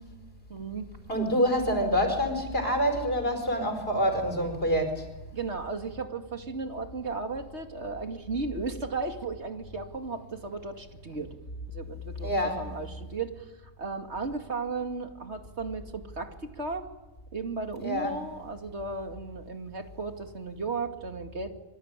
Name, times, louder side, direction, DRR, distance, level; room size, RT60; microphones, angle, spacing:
voice 1, 0.5-0.9 5.3-11.3 11.7-13.5 13.8-16.9 17.3-21.5, right 4 dB, 70° right, 4 dB, 2.8 m, -35 dB
voice 2, 1.1-5.1 12.2-12.6 17.8-18.2, equal, 55° left, 6 dB, 5.2 m, -26 dB
27.0 x 23.5 x 9.1 m, 1.1 s
omnidirectional pair, 1.2 m